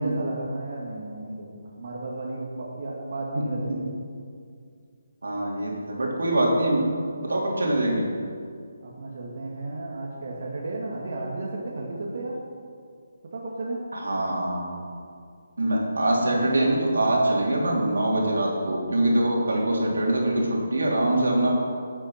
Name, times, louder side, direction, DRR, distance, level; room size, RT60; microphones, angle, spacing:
voice 1, 0.0-3.9 8.8-12.4 13.3-13.8, right 2 dB, 55° right, -4 dB, 1.9 m, -33 dB
voice 2, 5.2-6.9 7.2-8.1 13.9-14.7 15.6-21.5, right 1 dB, 85° right, -3 dB, 3.3 m, -23 dB
11.5 x 8.0 x 5.8 m, 2.2 s
figure-of-eight pair, 160°, 0 cm